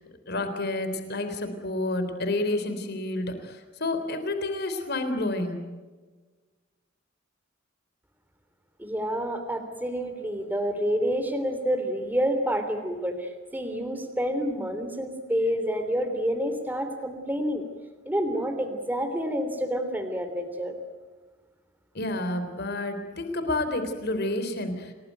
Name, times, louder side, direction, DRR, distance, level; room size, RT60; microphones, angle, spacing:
voice 1, 0.3-5.6 22.0-24.9, left 2 dB, 55° left, 8 dB, 3.6 m, -29 dB
voice 2, 8.8-17.6 18.0-20.8, equal, 10° right, 6 dB, 3.2 m, -28 dB
29.5 x 19.5 x 9.3 m, 1.4 s
head